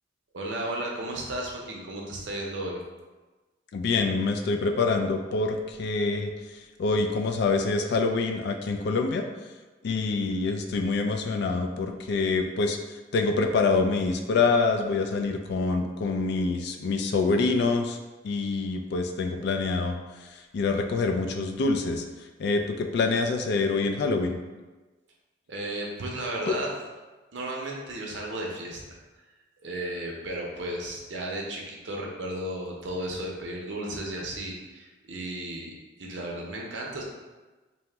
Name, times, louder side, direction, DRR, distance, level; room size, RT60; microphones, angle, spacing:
voice 1, 0.3-2.8 25.5-26.7 27.3-29.0 29.6-35.7 36.0-37.0, right 1 dB, 75° right, -1 dB, 0.6 m, -34 dB
voice 2, 3.7-6.3 6.8-9.2 9.8-12.8 13.1-18.0 18.2-20.0 20.5-22.0 22.4-24.4 26.5-26.6, left 3 dB, 65° left, 5 dB, 0.3 m, -26 dB
2.8 x 2.1 x 3.3 m, 1.2 s
head